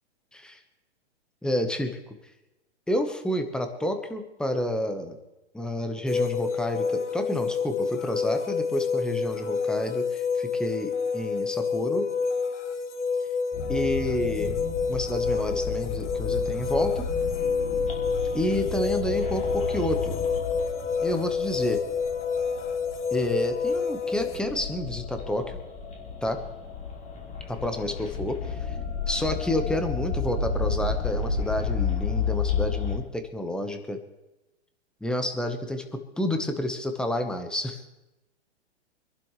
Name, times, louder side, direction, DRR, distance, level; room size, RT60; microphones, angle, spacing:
voice 1, 1.4-2.1 2.9-5.2 5.5-12.1 13.7-14.6 14.9-17.1 18.3-20.1 21.0-21.8 23.1-25.6 26.2-26.4 27.5-28.5 29.1-34.0 35.0-35.9 36.2-37.8, left 1 dB, ahead, 6 dB, 1.2 m, -29 dB
sound 1, 6.1-24.4, left 5 dB, 80° left, 1.5 m, -28 dB
sound 2, 13.5-33.0, left 5 dB, 20° left, 2.6 m, -32 dB
25.0 x 11.5 x 3.2 m, 1.0 s
hypercardioid pair, 135°, 35 cm